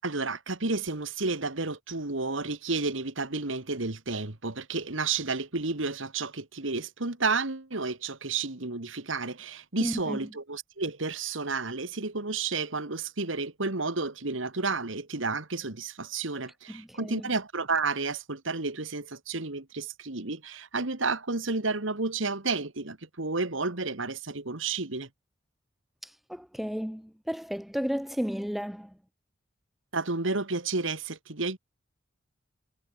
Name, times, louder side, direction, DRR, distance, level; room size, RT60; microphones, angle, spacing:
voice 1, 0.0-25.1 29.9-31.6, right 3 dB, 80° right, 2.2 m, -31 dB
voice 2, 9.8-10.2 16.7-17.3 26.0-28.9, equal, ahead, 0.4 m, -33 dB
head